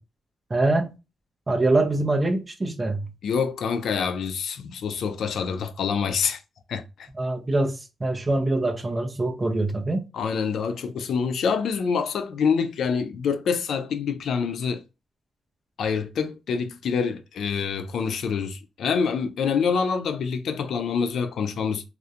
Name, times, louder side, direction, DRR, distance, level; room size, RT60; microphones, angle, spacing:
voice 1, 0.5-0.9 1.5-3.1 7.2-7.8 8.0-10.0, right 2 dB, 20° right, 0.4 m, -24 dB
voice 2, 3.2-6.4 6.7-7.1 10.1-14.8 15.8-21.8, left 6 dB, 70° left, 0.3 m, -26 dB
2.3 x 2.1 x 2.6 m
wide cardioid pair, 175°, 0 cm